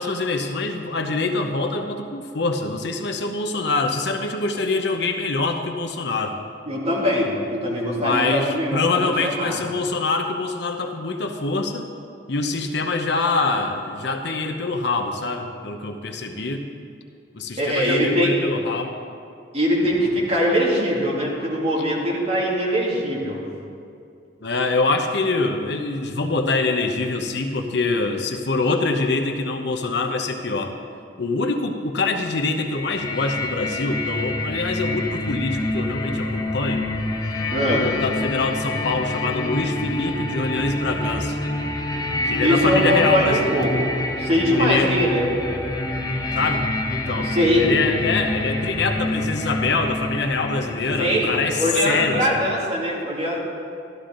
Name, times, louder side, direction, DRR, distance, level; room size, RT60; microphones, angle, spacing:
voice 1, 0.0-6.3 7.9-11.9 12.3-16.6 17.3-18.9 24.4-30.7 31.2-36.8 37.7-41.4 42.2-43.5 44.6-45.0 46.4-46.6 46.9-47.3 47.6-52.3, left 3 dB, 65° left, 5 dB, 0.9 m, -24 dB
voice 2, 6.7-9.6 17.6-18.3 19.5-23.4 37.5-37.9 42.4-45.3 47.2-47.7 51.0-53.4, equal, 35° right, -4 dB, 2.5 m, -22 dB
sound 1, 32.7-52.5, left 2 dB, 20° left, 0.8 m, -27 dB
13.0 x 13.0 x 3.9 m, 2.4 s
head